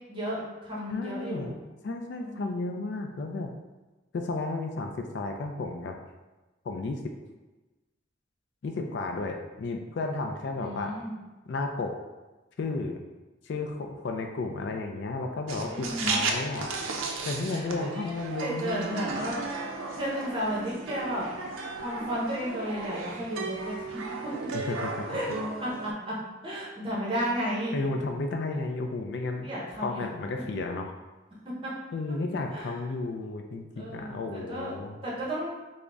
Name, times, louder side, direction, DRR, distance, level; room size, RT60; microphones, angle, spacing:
voice 1, 0.1-1.6 2.1-2.7 10.5-11.1 15.7-16.2 17.5-19.5 20.0-21.3 21.7-23.7 25.1-25.3 25.6-26.1 26.4-27.7 29.4-30.0 31.6-31.7 32.5-32.7 33.8-34.7 35.0-35.5, equal, 25° right, -5 dB, 0.8 m, -33 dB
voice 2, 0.9-1.5 1.8-3.5 4.1-6.0 6.6-7.0 8.6-10.9 11.5-11.9 12.6-13.0 13.4-16.7 17.3-18.9 24.5-25.1 27.7-29.5 29.8-30.9 31.9-35.0, left 3 dB, 60° left, 3 dB, 0.3 m, -33 dB
sound 1, 15.5-25.9, right 4 dB, 80° right, 0.4 m, -35 dB
3.7 x 2.1 x 3.4 m, 1.1 s
head